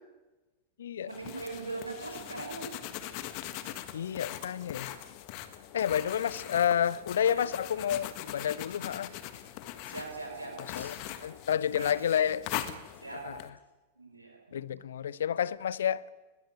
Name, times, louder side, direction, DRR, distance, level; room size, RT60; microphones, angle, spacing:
voice 1, 1.0-3.0 6.0-6.5 7.3-7.4 9.9-11.3 11.7-12.0 13.0-13.3 13.9-14.7, right 3 dB, 85° right, 5.2 m, -42 dB
sound 1, 1.1-13.5, left 13 dB, 45° left, 1.5 m, -41 dB
voice 2, 3.9-5.0 5.7-9.1 10.8-10.9 11.2-12.4 13.2-13.4 14.5-16.1, left 9 dB, 65° left, 0.6 m, -30 dB
20.5 x 15.5 x 9.1 m
figure-of-eight pair, 90°, 0 cm